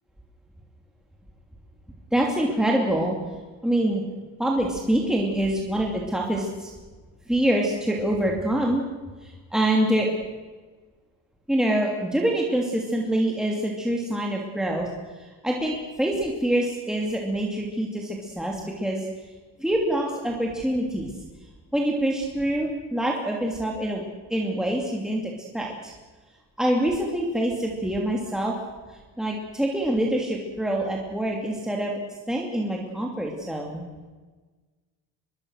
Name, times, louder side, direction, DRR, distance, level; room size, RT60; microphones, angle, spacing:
voice 1, 2.1-3.2 3.6-4.0 4.4-6.7 7.3-8.8 9.2-10.1 11.5-14.9 15.2-19.1 19.6-21.1 21.7-25.9 26.6-28.5 28.9-31.9 32.3-33.9, right 1 dB, ahead, -1 dB, 2.9 m, -25 dB
24.0 x 22.5 x 6.6 m, 1.3 s
cardioid pair, 145°, 36 cm